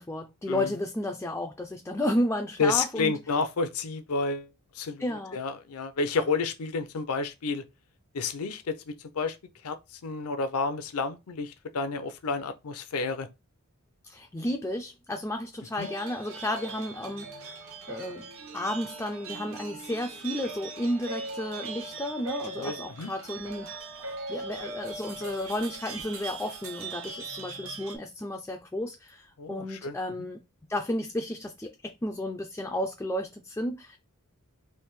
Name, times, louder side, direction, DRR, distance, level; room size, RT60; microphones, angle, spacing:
voice 1, 0.0-3.1 5.0-5.4 14.0-17.5 17.9-23.7 24.3-30.4 30.7-34.0, left 1 dB, 10° left, 0.3 m, -32 dB
voice 2, 2.6-4.5 4.7-7.6 8.1-9.4 9.6-13.3 15.8-15.9 22.5-23.1 29.4-30.3, left 4 dB, 75° left, 0.6 m, -30 dB
sound 1, 15.8-28.0, right 3 dB, 65° right, 0.8 m, -40 dB
3.4 x 2.6 x 3.1 m
head